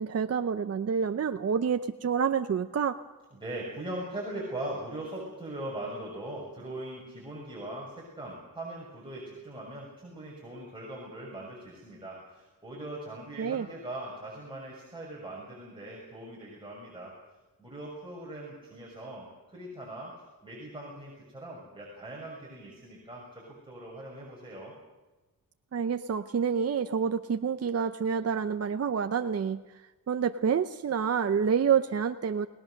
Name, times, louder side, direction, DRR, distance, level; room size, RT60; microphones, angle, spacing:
voice 1, 0.0-3.0 13.4-13.7 25.7-29.6 30.1-32.5, right 7 dB, 45° right, 8 dB, 0.7 m, -28 dB
voice 2, 3.3-17.1 17.6-24.7, right 1 dB, 15° right, -4 dB, 6.6 m, -40 dB
29.5 x 19.0 x 6.5 m, 1.2 s
wide cardioid pair, 130°, 35 cm